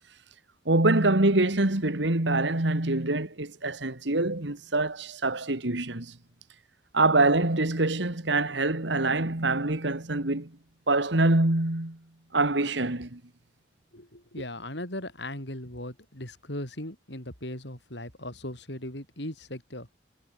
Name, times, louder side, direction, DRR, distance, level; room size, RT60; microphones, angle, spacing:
voice 1, 0.7-6.2 6.9-10.6 10.9-12.0 12.3-13.2, right 2 dB, 70° right, 2.1 m, -25 dB
voice 2, 13.9-19.9, left 1 dB, 65° left, 7.7 m, -38 dB
head